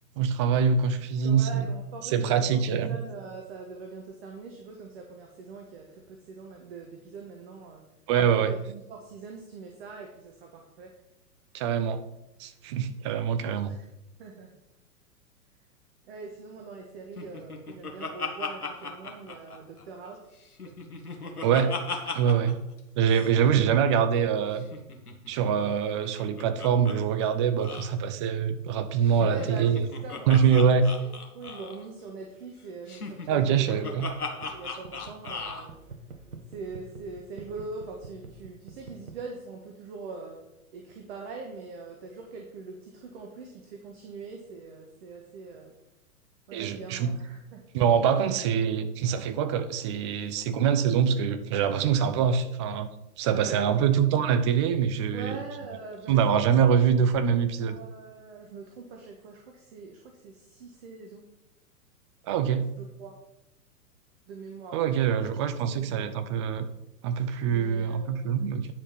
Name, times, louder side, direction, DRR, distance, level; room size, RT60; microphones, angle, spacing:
voice 1, 0.2-1.7 2.0-3.0 8.1-8.5 11.5-12.0 12.4-13.8 21.4-21.7 22.1-22.6 23.0-24.7 25.3-29.8 30.3-30.9 33.3-34.1 46.5-47.2 47.7-52.9 53.2-55.4 56.1-57.8 62.3-62.7 64.7-66.7 67.0-68.7, right 7 dB, 20° right, 10 dB, 0.5 m, -24 dB
voice 2, 1.2-7.8 8.3-10.9 13.6-13.9 14.2-14.6 16.0-20.3 20.6-21.7 29.2-30.6 30.9-31.1 31.3-35.8 36.5-40.4 40.7-45.7 46.5-47.7 53.3-54.0 55.1-56.3 57.6-61.3 62.8-63.2 64.3-65.2 65.7-66.4 67.4-68.3, right 4 dB, 40° right, 2 dB, 1.5 m, -43 dB
Laughter, 17.2-20.1 20.4-22.5 22.8-22.9 23.1-23.3 24.6-26.9 27.2-27.3 27.6-27.9 29.0-31.8 32.9-35.6, left 4 dB, 75° left, 1.7 m, -37 dB
sound 1, 34.0-39.2, right 4 dB, 70° right, 1.4 m, -46 dB
9.9 x 5.3 x 5.9 m, 0.90 s
figure-of-eight pair, 110°, 45 cm